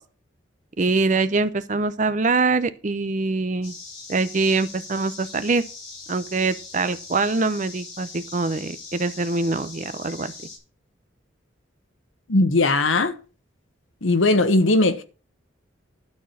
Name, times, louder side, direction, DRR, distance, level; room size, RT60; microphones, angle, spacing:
voice 1, 0.8-3.7 4.1-5.6 6.1-10.3, right 3 dB, 40° right, 0.6 m, -24 dB
sound 1, 3.6-10.6, left 4 dB, 55° left, 6.2 m, -41 dB
voice 2, 12.3-13.1 14.0-15.0, left 2 dB, 75° left, 1.1 m, -19 dB
12.0 x 4.4 x 7.1 m
head